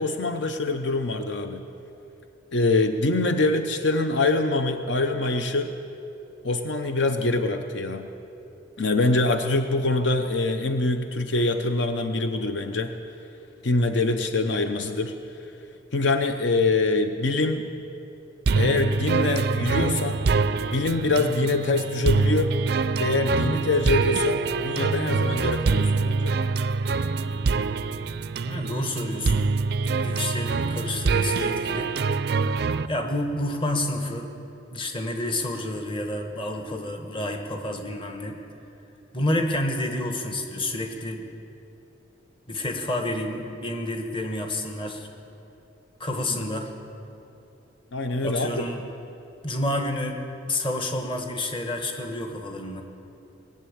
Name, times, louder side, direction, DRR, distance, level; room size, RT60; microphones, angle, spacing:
voice 1, 0.0-1.7 2.5-5.7 6.4-8.1 8.8-12.9 13.6-15.4 15.9-17.7 18.6-20.2 20.7-22.6 23.0-26.4 47.9-48.6, left 2 dB, 65° left, 7 dB, 0.6 m, -24 dB
sound 1, 18.5-32.9, right 4 dB, 55° right, 0.3 m, -25 dB
voice 2, 28.5-29.5 29.9-31.9 32.9-34.3 34.7-38.4 39.1-41.2 42.5-45.1 46.0-46.7 48.2-48.8 49.4-50.2 50.5-52.8, left 1 dB, 25° left, 4 dB, 1.1 m, -29 dB
19.0 x 7.3 x 8.6 m, 2.8 s
head